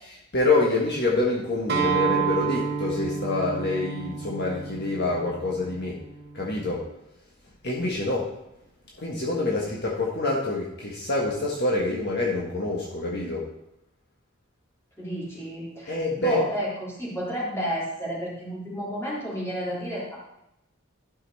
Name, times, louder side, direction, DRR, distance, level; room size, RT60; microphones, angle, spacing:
voice 1, 0.3-6.0 6.3-6.8 7.6-8.2 9.0-13.4 15.9-16.4, left 2 dB, 50° left, -4 dB, 1.5 m, -26 dB
Acoustic guitar, 1.7-6.9, right 6 dB, 50° right, 1.4 m, -30 dB
voice 2, 15.0-20.2, equal, 15° left, -7 dB, 3.4 m, -31 dB
12.0 x 5.6 x 4.1 m, 0.86 s
head